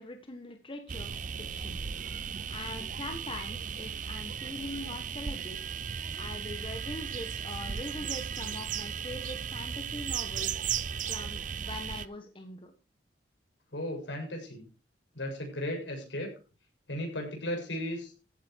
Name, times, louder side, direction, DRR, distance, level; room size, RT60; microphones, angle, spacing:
voice 1, 0.0-1.8 2.1-5.6 6.1-10.6 11.1-12.7, left 2 dB, 30° left, 6 dB, 1.5 m, -42 dB
sound 1, 0.9-12.1, right 7 dB, 45° right, 0.6 m, -36 dB
voice 2, 13.7-14.6 15.2-16.3 16.9-18.1, left 1 dB, 80° left, 2 dB, 7.3 m, -35 dB
15.0 x 9.4 x 4.7 m, 0.34 s
head